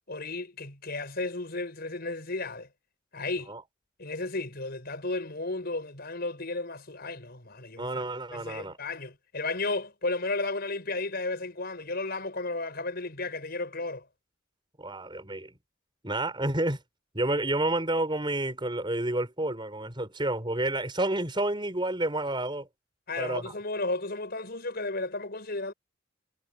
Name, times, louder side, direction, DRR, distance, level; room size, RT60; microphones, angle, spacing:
voice 1, 0.1-2.7 3.1-3.5 4.0-8.0 8.3-14.1 23.1-25.7, left 3 dB, 50° left, 5.4 m, -33 dB
voice 2, 7.8-8.8 14.8-15.5 16.0-16.8 17.1-22.7 23.2-23.5, right 1 dB, 25° right, 4.7 m, -30 dB
head